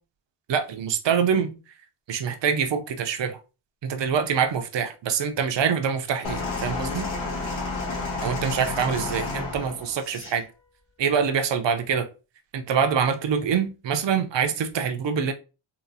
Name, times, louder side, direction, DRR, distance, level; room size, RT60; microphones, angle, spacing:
voice 1, 0.5-1.5 2.1-3.4 3.8-7.1 8.2-10.4 11.0-12.0 12.5-15.3, right 7 dB, 65° right, 0.6 m, -25 dB
sound 1, 6.2-10.4 11.3-11.4, left 3 dB, 75° left, 1.3 m, -31 dB
3.8 x 2.5 x 2.6 m
wide cardioid pair, 160°, 48 cm